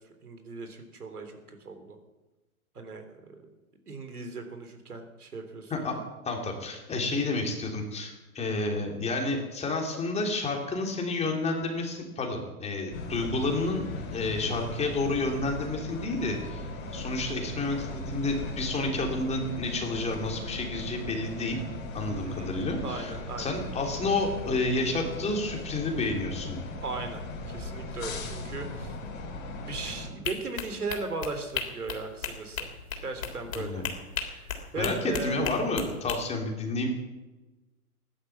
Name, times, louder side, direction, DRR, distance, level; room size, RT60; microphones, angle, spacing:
voice 1, 0.2-2.0 2.8-3.0 3.3-3.4 3.9-6.0 22.2-22.6 22.8-23.6 26.8-29.0 29.6-32.7 33.0-33.9 34.3-35.6, right 3 dB, 80° right, 6 dB, 3.6 m, -37 dB
voice 2, 6.2-13.8 14.1-16.6 16.9-21.6 21.9-26.6 33.5-33.9 34.8-36.9, left 2 dB, 15° left, 1 dB, 3.3 m, -30 dB
sound 1, 12.9-30.1, left 2 dB, 30° left, 4.7 m, -38 dB
sound 2, 30.2-36.2, left 7 dB, 60° left, 3.6 m, -35 dB
16.0 x 11.5 x 7.3 m, 1.1 s
figure-of-eight pair, 115°, 44 cm